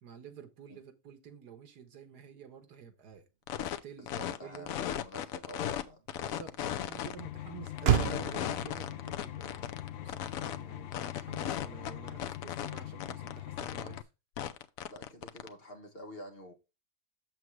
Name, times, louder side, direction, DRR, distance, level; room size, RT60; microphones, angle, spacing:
voice 1, 0.0-3.3 3.6-4.7 6.2-14.1, right 7 dB, 85° right, 1.8 m, -50 dB
sound 1, 3.5-3.8 4.1-5.8 6.1-7.2 7.7-10.6 10.9-13.3 13.6-14.0 14.4-15.5, left 10 dB, 70° left, 1.0 m, -36 dB
Motor vehicle (road), 3.9-12.4, right 9 dB, 50° right, 0.8 m, -37 dB
voice 2, 4.0-6.0 14.9-16.5, equal, 40° left, 1.4 m, -48 dB
sound 2, 7.2-14.0, left 13 dB, 85° left, 0.5 m, -43 dB
7.3 x 7.3 x 3.2 m
omnidirectional pair, 1.7 m